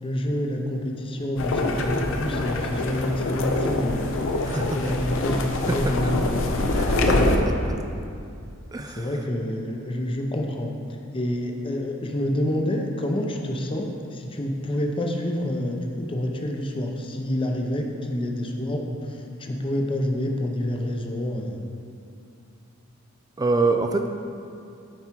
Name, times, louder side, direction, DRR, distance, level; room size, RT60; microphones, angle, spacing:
voice 1, 0.0-4.0 4.5-6.2 7.1-8.0 9.0-10.7 11.1-21.6, left 1 dB, 25° left, 2 dB, 0.6 m, -28 dB
sound 1, 1.4-7.4, left 2 dB, 65° left, 0.7 m, -25 dB
voice 2, 4.4-4.9 6.7-7.7 8.7-9.1 23.4-24.1, right 3 dB, 15° right, 5 dB, 0.3 m, -26 dB
9.3 x 4.7 x 4.5 m, 2.5 s
head